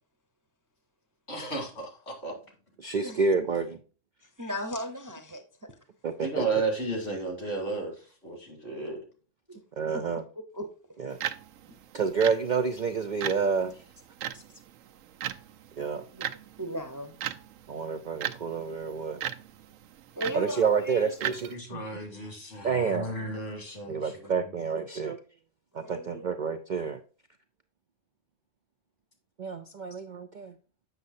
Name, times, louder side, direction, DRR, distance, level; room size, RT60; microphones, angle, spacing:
voice 1, 1.3-2.4 6.2-9.0 21.5-24.4, right 3 dB, 55° left, 2.7 m, -33 dB
voice 2, 2.8-3.8 6.0-6.4 9.8-10.2 11.0-11.2 11.9-13.8 14.3-14.4 15.8-16.0 17.7-19.2 20.3-21.8 22.6-23.1 23.9-25.2 25.7-27.0 29.4-30.5, right 5 dB, 55° right, 0.5 m, -29 dB
voice 3, 4.4-5.4 9.5-9.6 9.9-10.0 10.5-10.7 11.0-11.1 16.1-16.3 16.6-17.2 20.2-21.0 25.8-26.3, equal, 20° right, 0.7 m, -36 dB
sound 1, 11.1-21.6, right 10 dB, 90° right, 1.0 m, -39 dB
7.9 x 6.4 x 2.6 m
omnidirectional pair, 1.3 m